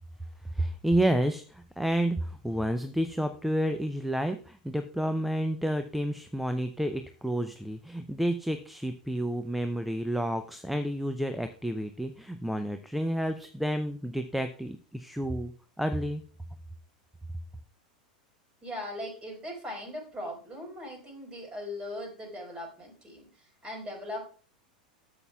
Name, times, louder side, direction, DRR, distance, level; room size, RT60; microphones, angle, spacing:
voice 1, 0.5-15.5 15.8-16.2, right 1 dB, 5° right, 8 dB, 0.5 m, -30 dB
voice 2, 18.6-24.3, left 1 dB, 25° right, 0 dB, 4.3 m, -39 dB
12.0 x 7.2 x 2.3 m, 0.41 s
figure-of-eight pair, 90°, 4 cm